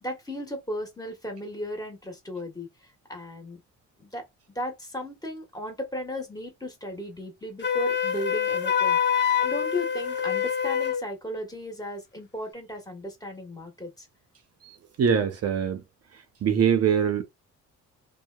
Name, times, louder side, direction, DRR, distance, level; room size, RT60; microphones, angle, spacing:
voice 1, 0.0-3.6 4.0-4.3 4.5-14.1, left 1 dB, 10° left, 1.3 m, -36 dB
Wind instrument woodwind instrument, 7.6-11.0, left 8 dB, 35° left, 0.6 m, -25 dB
voice 2, 14.6-15.8 16.4-17.2, right 7 dB, 55° right, 0.6 m, -23 dB
2.8 x 2.2 x 2.2 m
cardioid pair, 90°, 30 cm